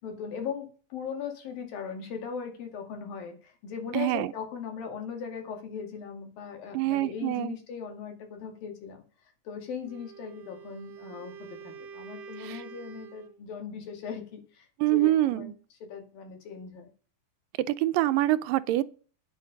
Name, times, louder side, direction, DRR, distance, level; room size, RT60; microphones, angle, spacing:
voice 1, 0.0-9.0 9.5-15.5 15.8-16.9, left 6 dB, 85° left, 4.1 m, -39 dB
voice 2, 3.9-4.3 6.7-7.6 12.4-12.6 14.8-15.5 17.7-18.8, right 16 dB, 80° right, 2.3 m, -25 dB
Wind instrument woodwind instrument, 9.8-13.4, right 7 dB, 65° right, 1.8 m, -46 dB
10.0 x 9.8 x 5.3 m
omnidirectional pair, 4.0 m